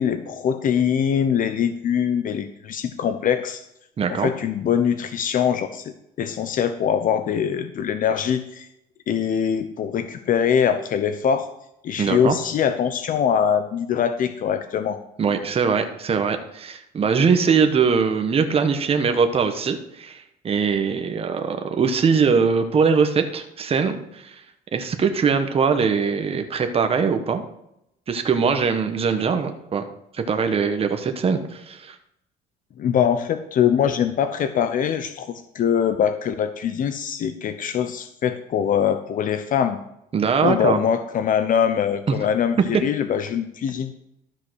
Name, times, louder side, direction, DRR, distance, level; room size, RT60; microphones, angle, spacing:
voice 1, 0.0-3.6 4.1-8.7 9.1-11.5 11.8-15.0 32.8-39.8 40.4-44.0, left 8 dB, 55° left, 9 dB, 0.8 m, -23 dB
voice 2, 4.0-4.3 12.0-12.3 15.2-24.3 24.7-27.4 28.1-29.8 30.1-32.0 40.1-40.8 42.1-42.2, right 5 dB, 35° right, 7 dB, 1.2 m, -21 dB
13.0 x 5.7 x 6.4 m, 0.80 s
cardioid pair, 110°, 17 cm